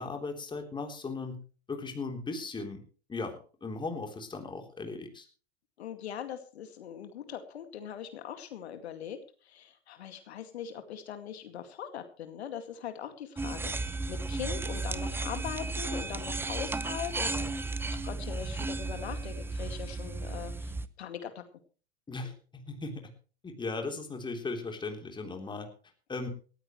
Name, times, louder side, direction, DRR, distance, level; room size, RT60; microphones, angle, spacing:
voice 1, 0.0-1.4 1.7-2.8 3.1-5.3 22.1-23.1 23.4-25.7 26.1-26.3, left 3 dB, 15° left, 4 dB, 3.6 m, -37 dB
voice 2, 5.8-21.4, left 9 dB, 70° left, 8 dB, 2.3 m, -41 dB
sound 1, 13.4-20.9, right 3 dB, 5° right, 0.7 m, -34 dB
18.5 x 15.0 x 3.2 m, 0.38 s
hypercardioid pair, 105°, 33 cm